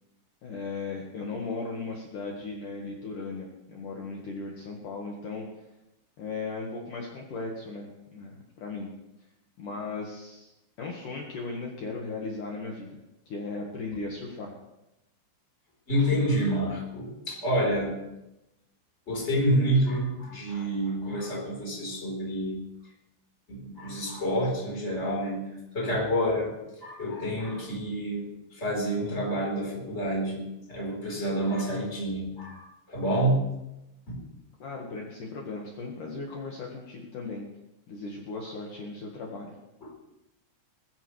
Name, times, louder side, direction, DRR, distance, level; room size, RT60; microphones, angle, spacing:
voice 1, 0.4-5.6 6.2-8.9 9.6-10.5 10.8-13.0 13.3-14.5 34.6-37.5 37.9-39.5, left 3 dB, 65° left, -1 dB, 2.1 m, -37 dB
voice 2, 15.9-18.0 19.1-22.6 23.5-25.5 25.7-28.3 28.6-33.5 34.1-34.2, equal, 15° left, -2 dB, 3.4 m, -28 dB
21.0 x 14.0 x 3.2 m, 0.94 s
omnidirectional pair, 5.9 m